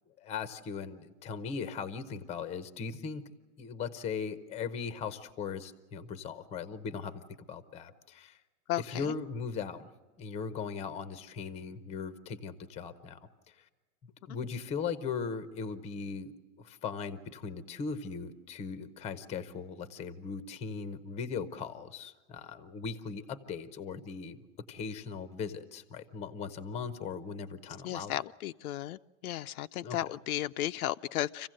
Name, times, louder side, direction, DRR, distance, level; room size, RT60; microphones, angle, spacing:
voice 1, 0.2-3.3 3.6-8.4 8.8-9.9 10.2-13.7 14.3-16.3 16.6-24.4 24.7-28.2 29.8-30.0, left 5 dB, 15° left, 12 dB, 0.7 m, -39 dB
voice 2, 8.7-9.1 27.8-31.5, left 13 dB, 70° left, 11 dB, 0.6 m, -34 dB
26.0 x 16.0 x 7.6 m, 1.4 s
supercardioid pair, 155°, 46 cm